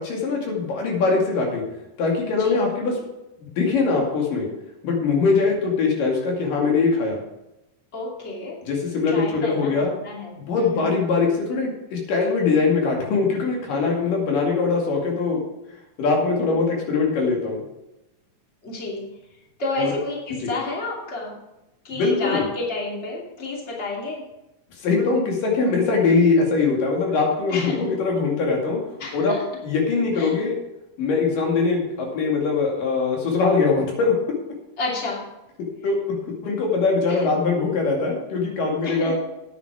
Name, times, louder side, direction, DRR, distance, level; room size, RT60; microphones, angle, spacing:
voice 1, 0.0-1.6 2.0-3.0 3.6-4.5 4.8-7.2 8.6-9.9 10.4-15.4 16.0-17.6 19.8-19.9 20.4-20.5 21.9-22.5 24.8-28.8 29.1-29.4 29.6-30.6 31.0-34.2 35.8-36.0 36.4-39.2, left 4 dB, 85° left, -1 dB, 4.0 m, -22 dB
voice 2, 2.3-2.7 7.9-8.6 9.1-10.9 18.6-19.1 19.6-21.4 21.8-24.2 27.5-27.8 29.0-29.4 30.1-30.3 34.8-35.2 37.1-37.3 38.8-39.1, left 3 dB, 20° left, -2 dB, 2.6 m, -31 dB
9.5 x 9.5 x 4.9 m, 0.92 s
omnidirectional pair, 3.8 m